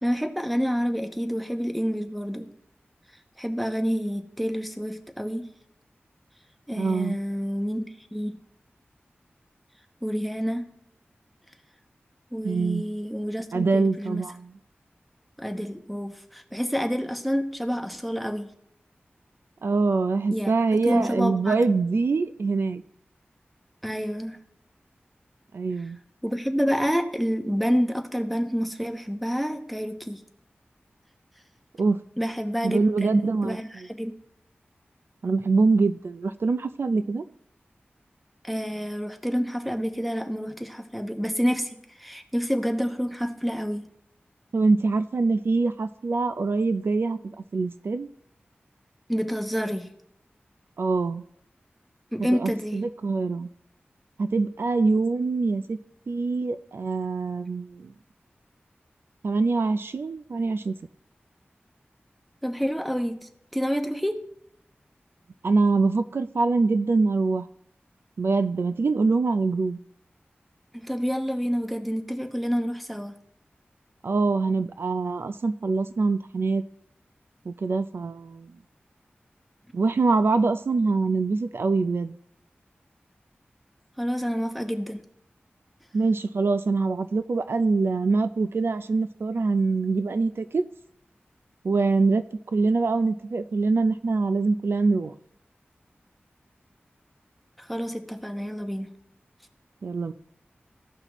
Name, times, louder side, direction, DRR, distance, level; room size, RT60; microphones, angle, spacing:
voice 1, 0.0-2.5 3.4-5.5 6.7-8.4 10.0-10.7 12.3-14.2 15.4-18.5 20.3-20.5 20.8-21.5 23.8-24.4 26.2-30.2 32.2-34.1 38.4-43.8 49.1-49.9 52.1-52.8 62.4-64.1 70.7-73.1 84.0-85.0 97.6-98.9, equal, ahead, 6 dB, 0.9 m, -28 dB
voice 2, 6.7-7.2 12.4-12.8 13.5-14.5 19.6-22.8 25.5-26.0 31.8-32.0 32.6-33.6 35.2-37.2 44.5-47.2 47.5-48.1 50.8-51.2 52.4-53.5 54.2-55.8 56.1-57.9 59.2-60.7 65.4-67.5 68.2-69.8 74.0-76.6 77.5-78.5 79.7-82.1 85.9-90.6 91.6-92.2 92.5-95.1 99.8-100.1, right 3 dB, 70° right, 11 dB, 0.4 m, -24 dB
14.5 x 5.7 x 3.0 m, 0.73 s
wide cardioid pair, 60°, 4 cm